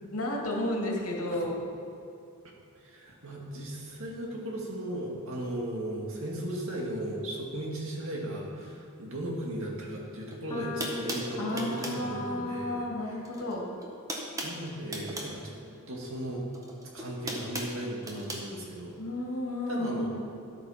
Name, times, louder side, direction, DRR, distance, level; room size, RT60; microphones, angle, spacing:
voice 1, 0.1-1.6 11.4-13.6 19.0-20.2, left 1 dB, 80° left, -1 dB, 2.2 m, -32 dB
voice 2, 2.8-13.2 14.4-15.5 15.9-16.4 16.9-18.9 19.7-20.1, right 1 dB, 65° right, -2 dB, 2.2 m, -36 dB
sound 1, 10.3-10.4 10.8-12.0 13.2-13.5 13.8-15.4 16.5-18.4, right 1 dB, 15° right, 1.3 m, -37 dB
sound 2, 10.5-16.8, left 2 dB, 25° left, 1.7 m, -45 dB
11.0 x 8.6 x 5.8 m, 2.6 s
head